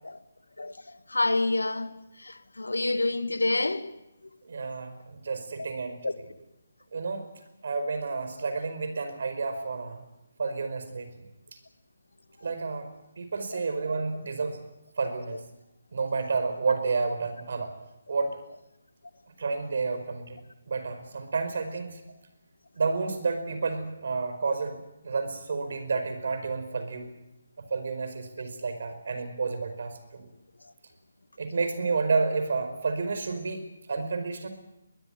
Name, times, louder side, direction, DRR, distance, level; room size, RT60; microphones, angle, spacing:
voice 1, 1.1-1.9 2.2-3.9 6.0-6.1 13.5-13.6, left 2 dB, 75° left, 1.8 m, -27 dB
voice 2, 4.5-6.3 6.9-7.2 7.6-10.0 10.4-11.1 12.4-12.9 13.2-14.6 15.0-15.4 15.9-17.7 18.1-18.4 19.4-20.4 20.7-22.0 22.8-24.8 25.0-27.1 27.7-30.3 31.4-34.5, right 4 dB, 55° right, 5.0 m, -30 dB
22.0 x 20.0 x 9.4 m
figure-of-eight pair, 145°, 0 cm